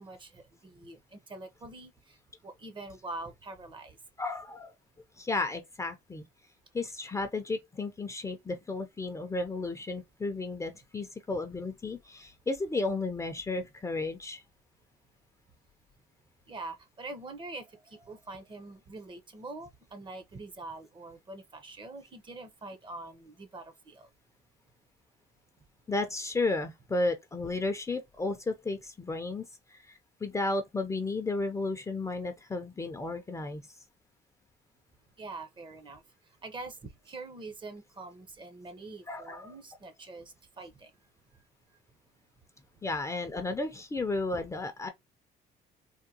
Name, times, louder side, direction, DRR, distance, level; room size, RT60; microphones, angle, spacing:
voice 1, 0.0-1.9 2.4-4.0 16.5-17.6 17.9-24.1 35.2-36.0 36.4-36.7 37.1-40.9, right 2 dB, 30° right, 0.7 m, -44 dB
voice 2, 4.2-4.7 5.2-6.2 6.7-14.4 25.9-33.6 39.1-39.5 42.8-44.9, left 3 dB, 20° left, 0.5 m, -33 dB
3.6 x 2.2 x 2.7 m
cardioid pair, 110°, 17 cm